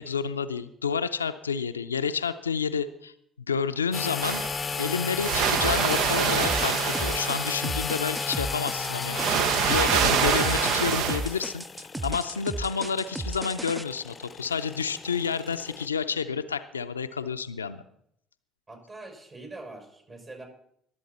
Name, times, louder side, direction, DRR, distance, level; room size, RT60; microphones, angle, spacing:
voice 1, 0.0-4.4 4.8-17.8, left 6 dB, 90° left, 10 dB, 0.5 m, -30 dB
sound 1, 3.9-15.9, left 5 dB, 35° left, 0.6 m, -34 dB
sound 2, 4.2-4.8 5.2-7.9 8.7-11.3, right 8 dB, 65° right, 0.7 m, -26 dB
sound 3, 5.6-13.8, right 1 dB, 10° right, 0.5 m, -35 dB
voice 2, 18.7-20.5, right 2 dB, 35° right, 3 dB, 6.1 m, -43 dB
22.0 x 7.8 x 4.2 m, 0.70 s
hypercardioid pair, 55°, 0 cm